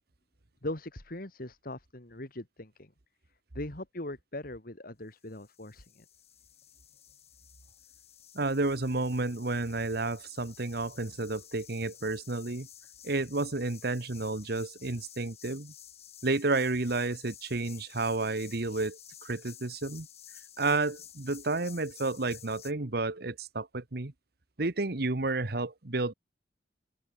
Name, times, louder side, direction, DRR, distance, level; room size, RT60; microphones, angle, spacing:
voice 1, 0.6-2.9 3.5-6.0, left 1 dB, 55° left, 2.9 m, -40 dB
sound 1, 5.2-22.7, left 10 dB, 35° left, 1.9 m, -52 dB
voice 2, 8.3-12.7 13.0-15.7 16.2-20.1 20.6-24.1 24.6-26.1, right 3 dB, 60° right, 1.3 m, -31 dB
open air
head